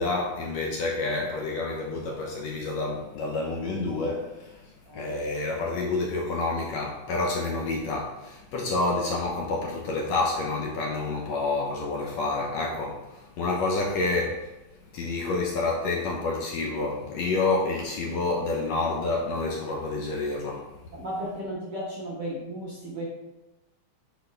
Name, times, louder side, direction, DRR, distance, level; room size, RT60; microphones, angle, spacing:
voice 1, 0.0-14.5 14.9-20.7, left 3 dB, 70° left, -1 dB, 1.8 m, -28 dB
voice 2, 20.9-23.1, right 1 dB, 50° right, -6 dB, 1.3 m, -34 dB
8.7 x 5.2 x 3.4 m, 0.97 s
omnidirectional pair, 3.7 m